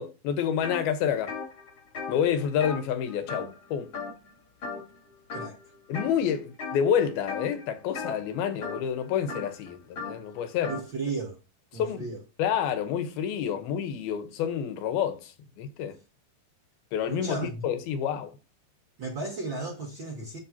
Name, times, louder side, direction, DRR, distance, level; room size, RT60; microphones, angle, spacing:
voice 1, 0.0-1.4 2.1-3.9 5.9-10.8 11.7-12.1 12.4-16.0 16.9-18.4, left 8 dB, 75° left, 2.9 m, -28 dB
sound 1, 0.6-0.8 1.1-3.7 3.9-4.3 4.6-5.0 5.3-6.1 6.6-6.9 7.2-10.9, left 5 dB, 35° left, 2.9 m, -37 dB
voice 2, 10.7-11.4 11.7-12.2 17.1-17.6 19.0-20.4, right 3 dB, 65° right, 1.1 m, -34 dB
7.7 x 7.4 x 2.8 m
omnidirectional pair, 4.5 m